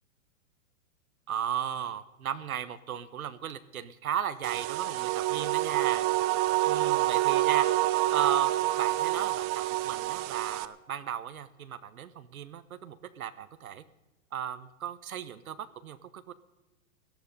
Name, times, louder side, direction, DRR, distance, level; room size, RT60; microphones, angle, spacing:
voice 1, 1.3-6.1 6.6-7.7 8.1-8.5 8.8-9.5 9.8-13.8 14.3-16.3, right 9 dB, 90° right, 12 dB, 1.0 m, -35 dB
sound 1, 4.4-10.6, right 16 dB, 30° right, 0.6 m, -27 dB
17.5 x 11.5 x 5.3 m, 1.1 s
hypercardioid pair, 125°, 42 cm